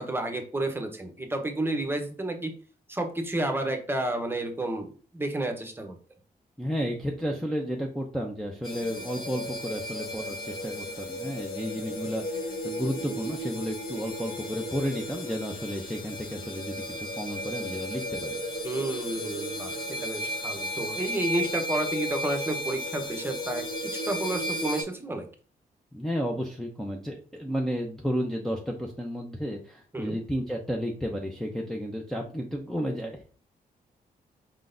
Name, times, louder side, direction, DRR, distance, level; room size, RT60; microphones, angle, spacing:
voice 1, 0.0-2.5 2.9-6.0 18.6-25.2 29.9-30.2, right 1 dB, 15° right, 4 dB, 0.9 m, -31 dB
voice 2, 6.6-18.4 25.9-33.2, equal, ahead, -1 dB, 0.6 m, -32 dB
sound 1, 8.6-24.8, equal, 65° left, 2.2 m, -34 dB
4.7 x 3.7 x 2.6 m, 0.40 s
cardioid pair, 95°, 16 cm